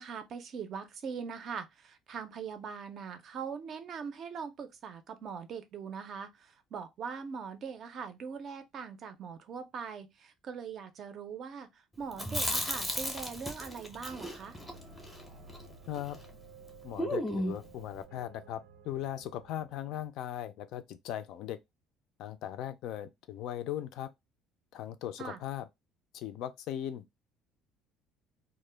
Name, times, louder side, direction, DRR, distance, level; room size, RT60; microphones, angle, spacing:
voice 1, 0.0-14.6 25.2-25.4, right 6 dB, 40° right, 0.4 m, -41 dB
Chewing mastication, 12.1-16.3 16.5-16.6 17.0-17.7, equal, 5° left, 0.6 m, -35 dB
sound 1, 13.8-20.1, right 4 dB, 85° right, 0.6 m, -55 dB
voice 2, 16.8-21.6 22.2-24.1 24.7-25.7 26.1-27.0, left 11 dB, 65° left, 0.3 m, -38 dB
2.1 x 2.0 x 3.1 m
cardioid pair, 150°, 0 cm